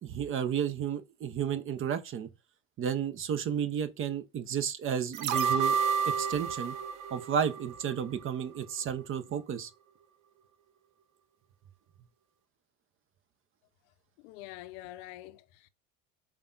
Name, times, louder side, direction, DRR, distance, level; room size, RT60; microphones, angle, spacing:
voice 1, 0.0-2.3 2.8-5.8 6.0-6.7 7.1-9.7, right 8 dB, 35° right, 0.5 m, -32 dB
sound 1, 5.1-8.3 8.6-8.7, right 6 dB, 85° right, 0.6 m, -30 dB
voice 2, 14.2-15.7, left 15 dB, 65° left, 0.5 m, -46 dB
5.0 x 2.2 x 2.3 m
supercardioid pair, 85°, 39 cm